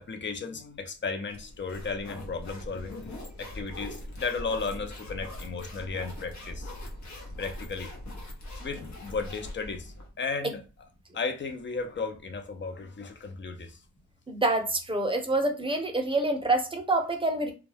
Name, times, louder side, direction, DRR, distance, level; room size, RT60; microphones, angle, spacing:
voice 1, 0.0-3.1 3.4-6.7 7.4-7.9 8.6-10.6 11.1-13.8, left 4 dB, 40° left, 0.6 m, -34 dB
sound 1, 1.3-10.1, left 1 dB, 65° left, 0.9 m, -41 dB
voice 2, 14.3-17.5, right 2 dB, 15° right, 0.7 m, -27 dB
2.3 x 2.2 x 3.3 m
cardioid pair, 70°, 30 cm